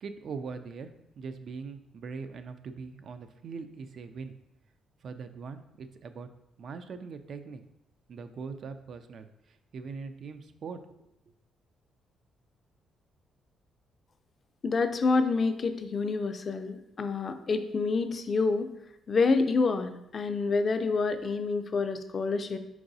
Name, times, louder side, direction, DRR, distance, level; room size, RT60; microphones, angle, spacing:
voice 1, 0.0-4.3 5.0-6.3 6.6-7.6 8.1-11.1, right 5 dB, 60° right, 9 dB, 0.4 m, -41 dB
voice 2, 14.6-18.7 19.1-22.6, left 4 dB, 40° left, 9 dB, 0.4 m, -27 dB
4.7 x 3.9 x 2.6 m, 0.84 s
cardioid pair, 90°, 0 cm